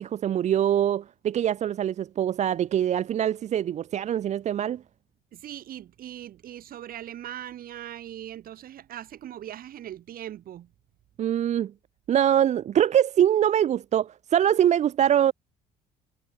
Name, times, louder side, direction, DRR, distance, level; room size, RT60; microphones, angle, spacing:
voice 1, 0.0-4.8 11.2-11.7 12.1-15.3, right 10 dB, 45° right, 0.5 m, -23 dB
voice 2, 5.3-10.7, right 11 dB, 60° right, 2.0 m, -40 dB
cardioid pair, 110°, 17 cm